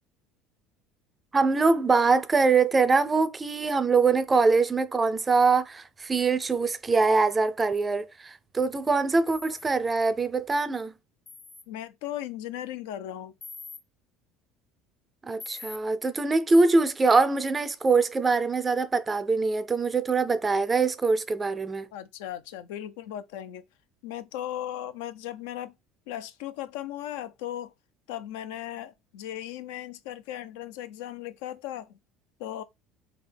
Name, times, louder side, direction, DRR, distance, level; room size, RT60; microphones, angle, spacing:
voice 1, 1.3-10.9 15.2-21.9, right 4 dB, 20° right, 0.4 m, -23 dB
sound 1, 9.3-9.6 11.3-11.6 13.4-13.8 15.4-15.8, left 3 dB, 25° left, 0.7 m, -42 dB
voice 2, 11.7-13.3 21.9-23.6 24.0-25.7 26.1-27.7 28.1-31.9 32.4-32.6, left 12 dB, 85° left, 0.5 m, -37 dB
3.7 x 2.3 x 3.4 m
supercardioid pair, 110°, 0 cm